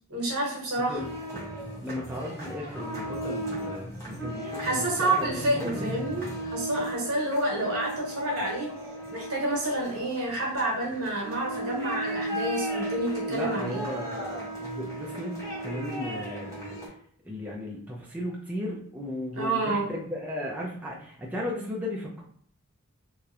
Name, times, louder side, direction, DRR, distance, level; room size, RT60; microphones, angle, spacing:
voice 1, 0.1-1.0 4.6-8.7 9.1-13.8 19.3-19.8, right 1 dB, 80° right, -2 dB, 0.9 m, -29 dB
sound 1, 0.9-16.9, right 1 dB, 15° left, 0.7 m, -36 dB
voice 2, 1.8-6.0 13.3-16.8 17.2-22.2, left 1 dB, 5° right, -4 dB, 0.3 m, -35 dB
2.8 x 2.1 x 2.3 m, 0.62 s
head